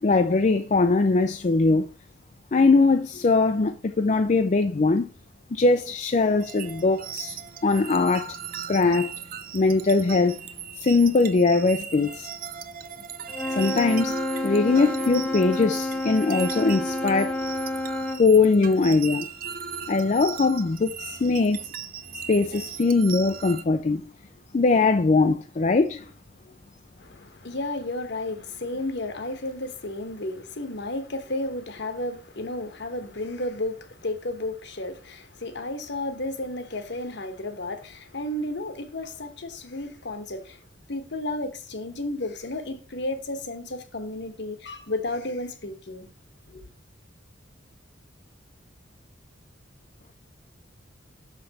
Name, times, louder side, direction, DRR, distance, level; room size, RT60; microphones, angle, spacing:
voice 1, 0.0-1.9 2.5-5.1 5.5-8.4 8.7-9.1 9.5-10.4 10.8-12.3 13.5-17.4 18.2-19.3 19.9-21.7 22.3-24.1 24.5-26.1, left 3 dB, 35° left, 0.4 m, -21 dB
sound 1, 6.4-23.6, right 7 dB, 45° right, 0.6 m, -38 dB
Wind instrument woodwind instrument, 13.3-18.3, left 1 dB, 10° left, 0.7 m, -29 dB
voice 2, 27.0-40.6 40.9-46.1 46.5-46.7, left 2 dB, 60° left, 1.1 m, -33 dB
6.4 x 5.9 x 4.0 m
head